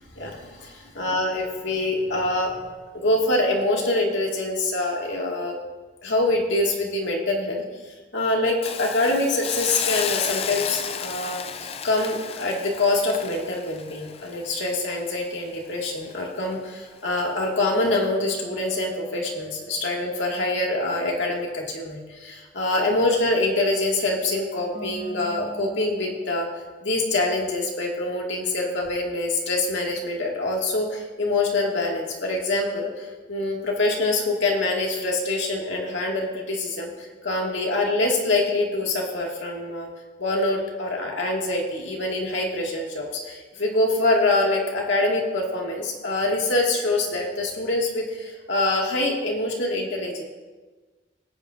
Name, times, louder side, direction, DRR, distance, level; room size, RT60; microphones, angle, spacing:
voice 1, 0.2-2.5 2.9-5.6 6.0-7.6 8.1-11.4 11.8-26.5 26.8-39.9 40.2-50.2, left 2 dB, 80° left, -1 dB, 2.1 m, -25 dB
Hiss, 8.6-15.7 16.1-16.2, left 8 dB, 30° left, 0.3 m, -32 dB
sound 1, 17.9-22.0 24.7-26.2, right 2 dB, 30° right, 3.5 m, -43 dB
17.0 x 8.8 x 2.6 m, 1.3 s
head